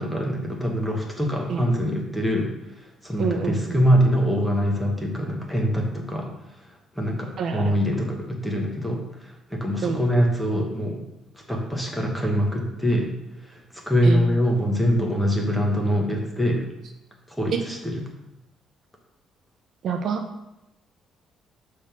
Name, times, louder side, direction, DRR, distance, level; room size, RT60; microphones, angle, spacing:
voice 1, 0.0-2.5 2.8-6.3 7.0-11.0 11.3-13.1 13.4-16.6 17.3-18.0, equal, 5° left, 1 dB, 1.1 m, -24 dB
voice 2, 3.2-3.8 7.4-7.7 9.8-10.0 14.0-14.4 17.5-17.6 19.8-20.2, right 6 dB, 50° right, 4 dB, 0.6 m, -27 dB
6.3 x 3.6 x 5.8 m, 0.91 s
cardioid pair, 150°, 0 cm